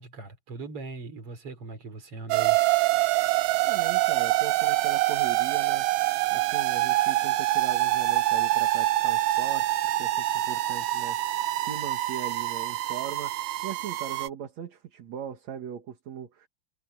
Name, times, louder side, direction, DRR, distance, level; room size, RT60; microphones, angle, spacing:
voice 1, 0.0-2.6, right 3 dB, 40° right, 4.6 m, -40 dB
sound 1, 2.3-14.3, right 16 dB, 75° right, 2.1 m, -25 dB
sound 2, 3.3-5.2 6.5-8.5 9.9-11.9, left 7 dB, 75° left, 3.8 m, -49 dB
voice 2, 3.6-5.9 6.3-9.7 10.0-11.2 11.5-16.5, right 8 dB, 55° right, 2.7 m, -39 dB
omnidirectional pair, 4.2 m